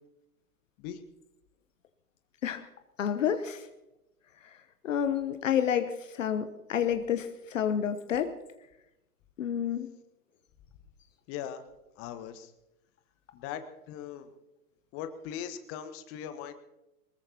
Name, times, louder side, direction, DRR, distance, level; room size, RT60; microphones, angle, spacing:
voice 1, 3.0-3.7 4.8-8.3 9.4-9.9, left 8 dB, 55° left, 9 dB, 1.1 m, -29 dB
voice 2, 11.3-11.6 12.0-12.5 13.3-14.3 14.9-16.5, left 9 dB, 30° left, 10 dB, 1.3 m, -39 dB
23.0 x 20.5 x 2.9 m, 0.94 s
figure-of-eight pair, 105°, 45 cm